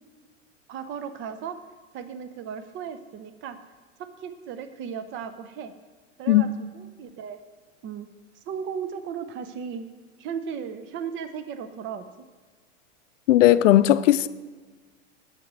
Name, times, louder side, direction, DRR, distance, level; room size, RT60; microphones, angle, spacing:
voice 1, 0.7-1.6 1.9-3.6 4.0-5.7 6.2-7.4 7.8-8.1 8.5-9.9 10.2-12.0, right 7 dB, 30° right, 0.8 m, -36 dB
voice 2, 13.3-14.3, left 13 dB, 75° left, 0.6 m, -17 dB
8.4 x 6.8 x 6.1 m
hypercardioid pair, 120°, 37 cm